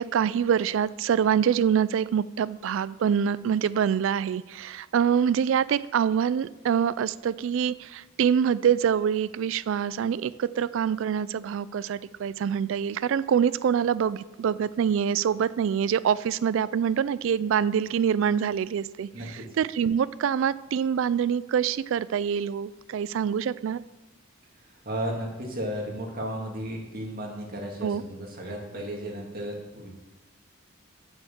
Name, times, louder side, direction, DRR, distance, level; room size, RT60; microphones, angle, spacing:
voice 1, 0.0-19.1 19.6-23.8 27.8-28.0, right 8 dB, 65° right, 18 dB, 0.3 m, -25 dB
voice 2, 19.1-19.4 24.5-29.9, equal, 45° right, -1 dB, 2.0 m, -34 dB
6.4 x 6.3 x 7.2 m, 1.1 s
head